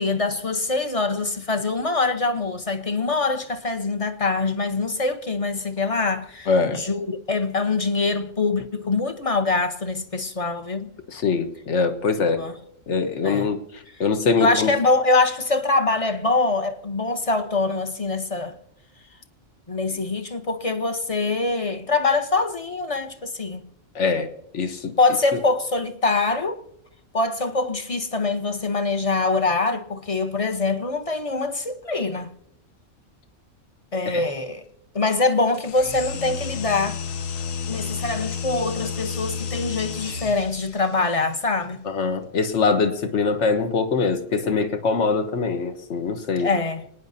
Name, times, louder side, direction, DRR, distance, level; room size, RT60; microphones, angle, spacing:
voice 1, 0.0-10.9 12.4-12.5 13.2-13.5 14.4-18.5 19.7-23.6 25.0-26.6 27.1-32.3 33.9-34.6 34.9-37.0 37.7-41.8 46.4-46.8, left 3 dB, 30° left, 0.8 m, -24 dB
voice 2, 6.5-6.8 11.1-12.4 12.9-13.6 14.0-14.7 23.9-24.9 34.1-34.2 41.9-46.5, left 4 dB, 65° left, 1.3 m, -23 dB
sound 1, 35.5-40.8, left 6 dB, 85° left, 1.2 m, -31 dB
29.5 x 9.8 x 2.7 m
omnidirectional pair, 1.3 m